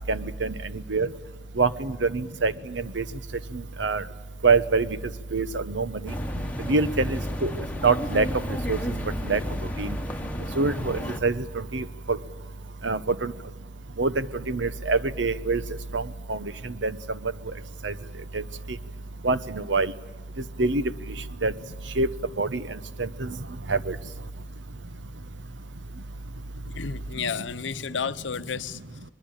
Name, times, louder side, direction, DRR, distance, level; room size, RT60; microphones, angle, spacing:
voice 1, 0.1-0.5 0.9-1.1 1.6-3.0 3.5-4.0 4.4-4.9 5.3-5.9 6.7-8.3 8.7-8.8 9.3-9.4 9.8-9.9 10.6-11.4 11.7-12.2 12.8-13.3 14.0-15.6 15.9-16.0 16.3-16.9 17.8-17.9 18.3-18.4 19.2-19.9 20.6-20.9 21.4-21.5 22.0-22.1 22.4-22.6 23.0-23.3 23.7-23.9, right 3 dB, 80° right, 14 dB, 1.0 m, -25 dB
sound 1, 6.1-11.2, equal, 10° left, 1.4 m, -32 dB
voice 2, 26.6-29.0, left 6 dB, 80° left, 13 dB, 0.8 m, -32 dB
22.5 x 22.0 x 8.9 m, 1.2 s
head